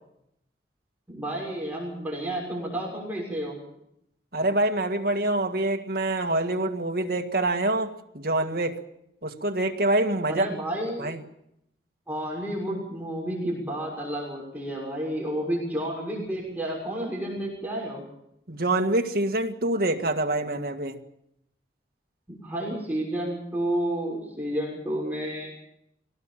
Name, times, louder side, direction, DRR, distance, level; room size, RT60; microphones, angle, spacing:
voice 1, 1.1-3.6 10.3-11.1 12.1-18.0 22.3-25.5, right 1 dB, 10° right, -3 dB, 6.5 m, -31 dB
voice 2, 4.3-8.8 9.2-10.5 11.0-11.2 18.5-21.0, right 2 dB, 55° right, 4 dB, 1.9 m, -26 dB
23.5 x 18.0 x 7.5 m, 0.78 s
head